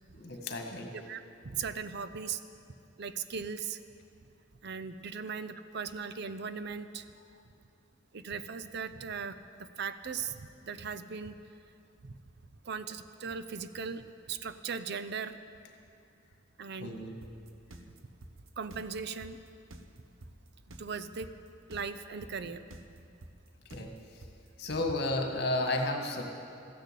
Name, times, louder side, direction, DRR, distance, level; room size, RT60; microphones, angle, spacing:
voice 1, 0.1-0.9 16.8-17.1 23.7-23.9 24.6-26.2, left 2 dB, 55° left, 3 dB, 1.8 m, -32 dB
voice 2, 0.9-2.4 3.0-3.8 4.6-7.1 8.1-11.4 12.0-12.2 12.6-15.4 16.6-16.9 18.6-19.4 20.8-21.3 21.7-22.6, right 6 dB, 55° right, 11 dB, 0.6 m, -38 dB
sound 1, 17.2-25.2, right 1 dB, 85° right, 1.1 m, -49 dB
14.5 x 10.5 x 8.3 m, 2.5 s
head